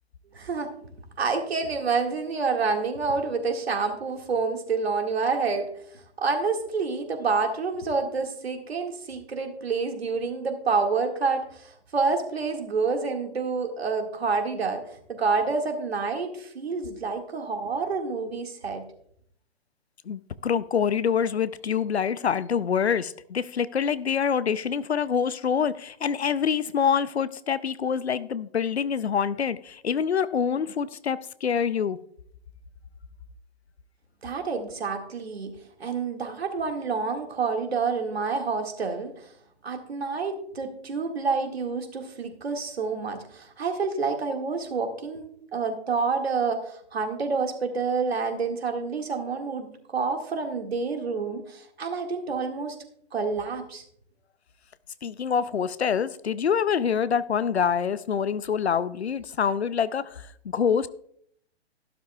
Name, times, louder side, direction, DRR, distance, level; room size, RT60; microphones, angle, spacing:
voice 1, 0.3-0.7 1.2-18.9 34.2-35.5 35.8-39.3 39.6-45.3 45.5-52.8 53.1-53.8, right 4 dB, 70° right, 2.1 m, -28 dB
voice 2, 20.1-32.0 55.0-60.9, left 7 dB, 75° left, 0.7 m, -26 dB
13.5 x 12.0 x 2.3 m
figure-of-eight pair, 120°, 32 cm